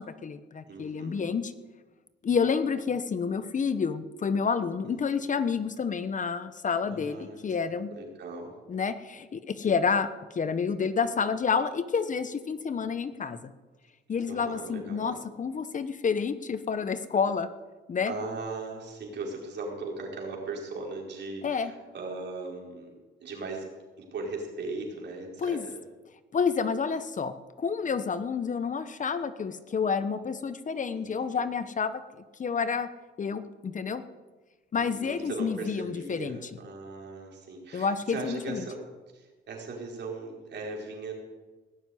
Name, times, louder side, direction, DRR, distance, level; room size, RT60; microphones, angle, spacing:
voice 1, 0.0-1.5 2.2-7.9 8.7-13.5 14.1-17.5 17.9-18.1 21.4-21.7 25.4-25.6 26.3-32.0 32.4-32.9 33.2-34.0 34.7-36.4 37.7-38.6, left 6 dB, 40° left, 12 dB, 1.0 m, -29 dB
voice 2, 0.7-1.3 4.9-5.3 6.9-7.4 7.9-8.5 14.3-15.2 18.0-23.7 24.0-25.8 31.0-31.4 34.8-38.8 39.1-41.1, right 3 dB, 60° right, 0 dB, 4.8 m, -38 dB
18.0 x 7.4 x 9.5 m, 1.2 s
cardioid pair, 90°, 20 cm